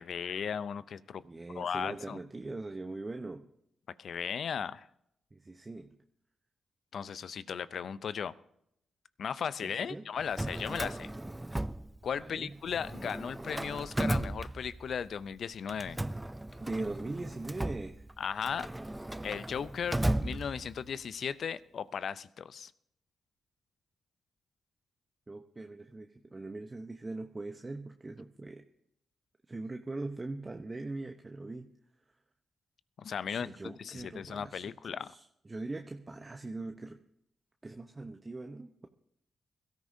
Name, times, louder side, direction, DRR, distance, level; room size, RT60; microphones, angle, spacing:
voice 1, 0.0-1.2 1.5-2.2 4.0-4.9 6.9-8.3 9.2-11.1 12.0-16.0 18.2-18.7 19.2-22.7 33.0-35.1, left 7 dB, 65° left, 17 dB, 0.5 m, -36 dB
voice 2, 1.2-3.4 5.3-5.9 9.6-10.0 12.2-12.6 16.6-18.0 25.3-28.6 29.5-31.7 33.3-37.0 37.6-38.9, right 2 dB, 30° right, 5 dB, 0.8 m, -41 dB
Drawer open or close, 10.2-12.4 12.7-15.1 15.7-21.0, right 1 dB, 15° right, 0.5 m, -36 dB
22.0 x 13.5 x 2.7 m, 0.75 s
supercardioid pair, 50°, 0 cm